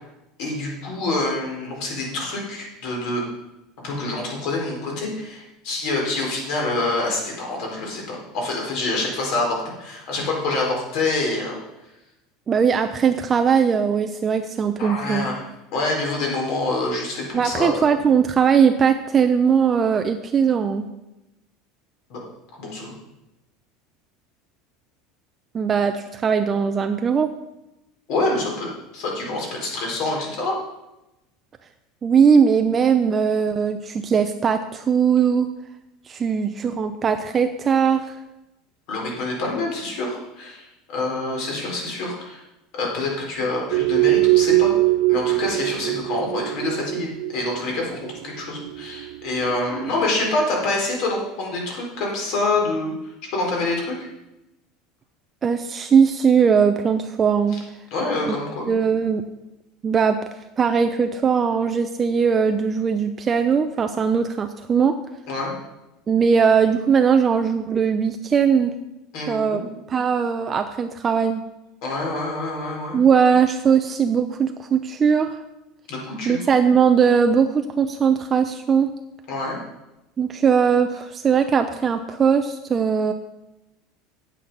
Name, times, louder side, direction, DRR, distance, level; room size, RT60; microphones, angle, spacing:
voice 1, 0.4-3.2 3.8-11.6 14.8-15.4 15.7-17.8 22.1-22.2 22.6-22.9 28.1-28.7 28.9-30.6 38.9-42.4 42.7-44.7 45.1-52.9 53.3-54.0 57.9-58.7 65.3-65.5 69.1-69.6 71.8-73.0 75.9-76.4 79.3-79.6, left 2 dB, 60° left, -1 dB, 4.3 m, -26 dB
voice 2, 12.5-15.3 17.3-20.8 25.5-27.3 32.0-35.5 36.1-38.2 49.8-49.9 55.4-57.6 58.3-58.4 58.7-59.2 59.8-60.2 60.6-65.0 66.1-68.7 69.3-69.6 69.9-71.4 72.9-75.4 76.3-78.9 80.2-83.1, right 6 dB, 25° right, 7 dB, 0.5 m, -19 dB
sound 1, 43.7-49.9, right 19 dB, 70° right, 0.4 m, -22 dB
8.9 x 8.7 x 5.5 m, 0.94 s
supercardioid pair, 150°, 0 cm